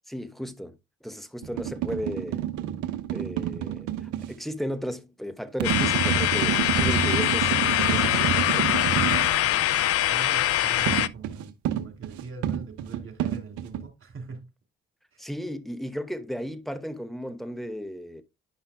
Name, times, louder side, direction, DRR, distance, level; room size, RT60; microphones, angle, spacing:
voice 1, 0.1-2.5 3.1-8.8 15.2-18.2, equal, ahead, 1.1 m, -35 dB
sound 1, 1.4-4.3 5.6-9.3 10.9-13.8, right 10 dB, 70° right, 0.8 m, -28 dB
sound 2, 5.6-11.1, left 12 dB, 50° left, 0.5 m, -23 dB
voice 2, 9.1-9.6 10.1-14.4 15.1-15.2, right 4 dB, 45° right, 3.1 m, -42 dB
10.5 x 5.6 x 2.3 m
hypercardioid pair, 55°, 30 cm